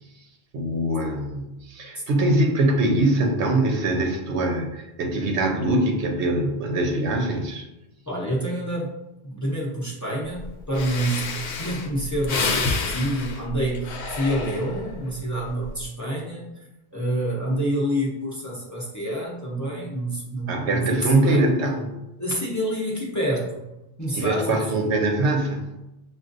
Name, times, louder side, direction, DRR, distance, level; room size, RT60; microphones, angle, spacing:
voice 1, 0.5-7.6 20.5-22.0 24.1-25.7, right 2 dB, 90° right, 2 dB, 1.0 m, -23 dB
voice 2, 8.1-8.9 9.2-11.2 11.6-16.5 16.9-21.5 22.2-23.6 24.0-24.6, right 1 dB, 20° left, -5 dB, 0.7 m, -27 dB
Breathing, 10.4-10.5 10.7-15.0 15.5-15.8, left 4 dB, 80° left, 0.9 m, -29 dB
6.0 x 2.4 x 2.5 m, 0.95 s
omnidirectional pair, 1.1 m